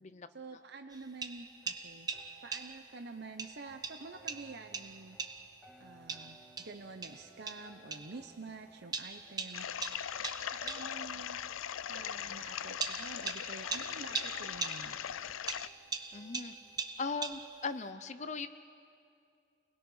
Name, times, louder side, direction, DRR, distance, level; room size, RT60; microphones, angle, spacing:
voice 1, 0.3-2.1 2.4-5.2 5.8-9.7 10.5-11.4 11.9-15.0, right 3 dB, 55° right, 6 dB, 0.8 m, -48 dB
sound 1, 0.9-2.9 3.4-5.6 6.1-8.2 8.9-11.0 11.9-12.0 12.8-15.1 15.5-17.7, right 4 dB, 20° right, 0.7 m, -41 dB
sound 2, 1.4-17.9, right 1 dB, ahead, 1.9 m, -61 dB
sound 3, 9.5-15.7, left 9 dB, 85° left, 0.5 m, -40 dB
voice 2, 16.1-16.5 17.0-18.5, left 4 dB, 35° left, 10 dB, 0.6 m, -38 dB
29.5 x 21.0 x 5.6 m, 2.4 s
head